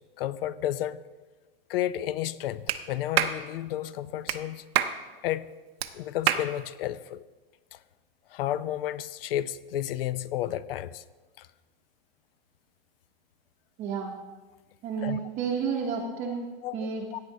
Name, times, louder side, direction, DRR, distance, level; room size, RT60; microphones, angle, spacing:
voice 1, 0.2-1.0 1.7-4.6 5.2-5.5 5.9-7.2 8.3-11.0 11.4-11.5 15.0-15.2 16.6-16.9 17.1-17.2, left 12 dB, 70° left, 17 dB, 0.5 m, -31 dB
Clapping, 2.7-2.8 3.2-3.4 4.3-4.4 4.8-5.0 5.8-5.9 6.3-6.5, right 11 dB, 85° right, 0.8 m, -25 dB
voice 2, 13.8-14.1 14.8-16.5 16.7-17.1, right 6 dB, 25° right, 0 dB, 0.8 m, -31 dB
15.5 x 8.8 x 2.8 m, 1.3 s
supercardioid pair, 160°, 30 cm